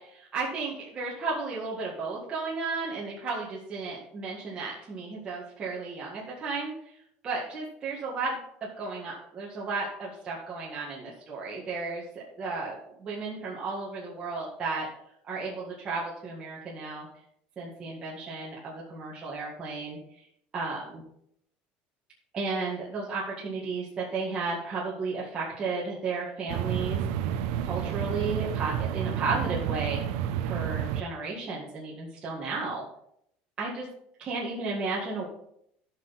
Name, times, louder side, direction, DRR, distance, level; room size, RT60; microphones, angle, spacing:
voice 1, 0.3-6.7 7.2-12.0 12.4-12.8 13.0-14.9 15.3-17.1 17.6-20.0 20.5-21.0 22.3-27.0 27.6-30.0 30.4-32.8 33.6-33.9 34.2-35.3, right 3 dB, 25° right, -5 dB, 1.9 m, -33 dB
sound 1, 26.5-31.0, right 9 dB, 80° right, 0.7 m, -30 dB
13.0 x 6.1 x 4.2 m, 0.73 s
cardioid pair, 160°, 4 cm